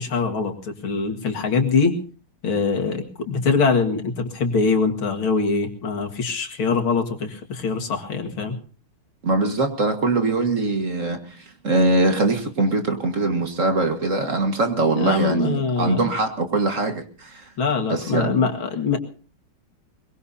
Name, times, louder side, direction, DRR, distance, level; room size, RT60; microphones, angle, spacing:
voice 1, 0.0-2.0 2.4-8.6 15.0-16.0 17.6-19.0, left 4 dB, 80° left, 2.8 m, -23 dB
voice 2, 9.2-17.5 17.9-18.3, right 2 dB, 40° right, 1.9 m, -22 dB
22.5 x 22.0 x 2.8 m
omnidirectional pair, 2.2 m